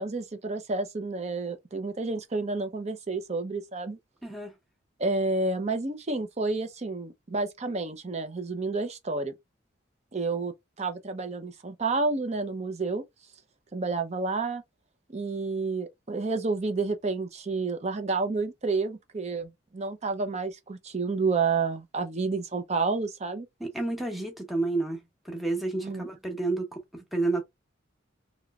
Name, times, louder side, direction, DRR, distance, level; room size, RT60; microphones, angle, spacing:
voice 1, 0.0-4.0 5.0-9.3 10.1-10.5 10.8-13.0 13.7-14.6 15.1-23.5 25.7-26.1, right 3 dB, 35° right, 0.6 m, -30 dB
voice 2, 4.2-4.5 23.6-27.4, right 2 dB, ahead, 0.9 m, -30 dB
3.0 x 3.0 x 2.3 m
head